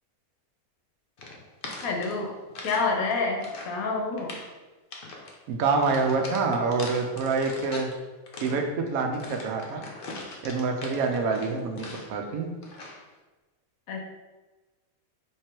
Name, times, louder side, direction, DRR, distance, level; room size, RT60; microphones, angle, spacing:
sound 1, 1.2-2.8 3.1-3.8 4.1-4.5 4.9-5.4 5.8-7.9 8.3-12.2 12.6-13.1, left 2 dB, 50° left, 0.7 m, -41 dB
voice 1, 1.8-2.3 2.6-4.3 13.9-14.1, left 3 dB, 80° left, 2 dB, 1.2 m, -28 dB
voice 2, 5.5-7.9 8.4-9.9 10.4-12.5, right 4 dB, 80° right, 4 dB, 1.1 m, -26 dB
3.7 x 3.2 x 4.4 m, 1.2 s
omnidirectional pair, 1.5 m